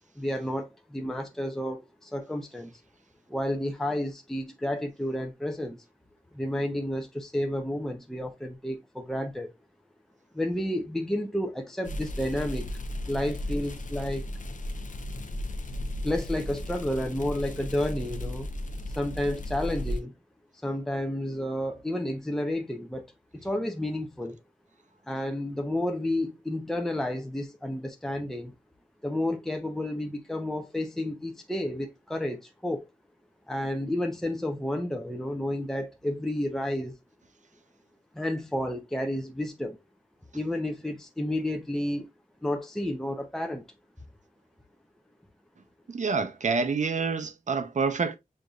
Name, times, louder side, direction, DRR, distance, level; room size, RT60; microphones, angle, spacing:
voice 1, 0.2-2.7 3.3-5.8 6.3-9.5 10.3-12.8 13.1-14.3 16.0-18.5 18.9-20.1 20.6-23.1 23.3-24.4 25.1-28.5 29.0-32.9 33.5-37.0 38.1-39.8 40.3-42.1 42.4-43.6, left 1 dB, 5° left, 0.5 m, -31 dB
sound 1, 11.8-20.0, left 1 dB, 60° left, 0.5 m, -35 dB
voice 2, 45.9-48.2, right 4 dB, 55° right, 0.6 m, -27 dB
6.4 x 2.6 x 2.3 m
wide cardioid pair, 90°, 15 cm